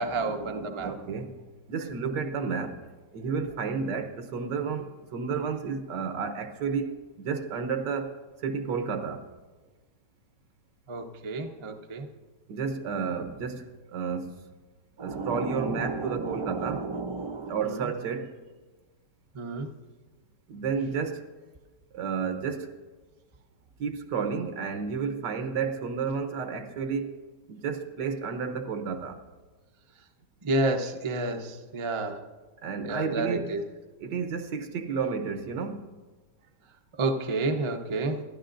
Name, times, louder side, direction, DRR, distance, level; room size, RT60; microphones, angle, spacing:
voice 1, 0.0-1.2 10.9-12.1 15.0-17.9 19.3-19.7 30.4-32.2 32.8-33.6 37.0-38.2, right 2 dB, 35° right, 0.4 m, -31 dB
voice 2, 0.8-1.3 1.7-2.8 3.1-8.1 8.4-9.2 12.5-14.4 15.0-16.8 17.5-18.3 20.5-21.2 21.9-22.7 23.8-27.2 27.5-29.2 32.6-33.5 34.0-35.9, right 5 dB, 80° right, 1.6 m, -31 dB
26.0 x 12.0 x 2.6 m
omnidirectional pair, 1.9 m